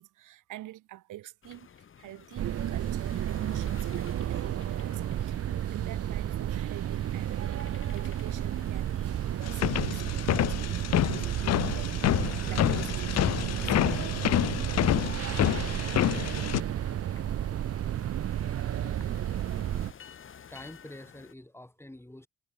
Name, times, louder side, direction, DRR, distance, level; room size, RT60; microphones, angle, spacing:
voice 1, 0.0-15.2, right 15 dB, 85° right, 3.2 m, -47 dB
sound 1, 1.4-21.3, left 7 dB, 40° left, 1.4 m, -53 dB
sound 2, 2.4-19.9, right 11 dB, 50° right, 0.7 m, -32 dB
sound 3, 9.4-16.6, left 13 dB, 60° left, 0.7 m, -28 dB
voice 2, 18.8-20.1 20.5-22.3, left 1 dB, 10° left, 7.6 m, -48 dB
cardioid pair, 90°, 30 cm